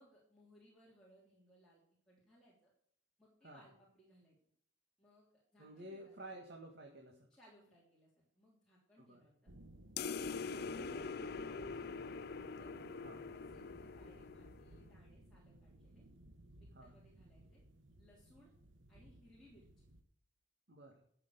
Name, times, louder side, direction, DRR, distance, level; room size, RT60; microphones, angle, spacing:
voice 1, 0.0-2.7 3.2-4.4 5.0-6.4 7.3-9.5 12.6-16.0 16.6-17.6 18.0-18.5 18.9-19.9, equal, 5° left, -7 dB, 3.2 m, -66 dB
voice 2, 5.6-7.3 9.0-9.3 13.0-13.2 16.7-17.0 20.7-21.0, right 1 dB, 50° right, 1 dB, 1.8 m, -52 dB
sound 1, 9.5-20.0, right 1 dB, 70° right, 1.3 m, -60 dB
sound 2, 10.0-14.8, left 5 dB, 50° left, 0.5 m, -44 dB
12.0 x 6.9 x 6.8 m, 0.65 s
head